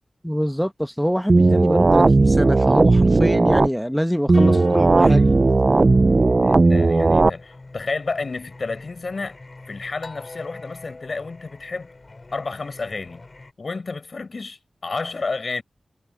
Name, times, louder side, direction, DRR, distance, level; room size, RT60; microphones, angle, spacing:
voice 1, 0.2-5.3, equal, ahead, 1.1 m, -24 dB
sound 1, 1.3-3.7 4.3-7.3, right 3 dB, 40° right, 0.4 m, -16 dB
sound 2, 4.3-6.7, left 4 dB, 75° left, 4.0 m, -37 dB
Singing, 5.8-13.5, left 3 dB, 40° left, 6.5 m, -43 dB
voice 2, 6.4-9.4 9.7-11.9 12.3-13.2 13.6-15.6, left 3 dB, 55° left, 7.8 m, -31 dB
wide cardioid pair, 100°, 0 cm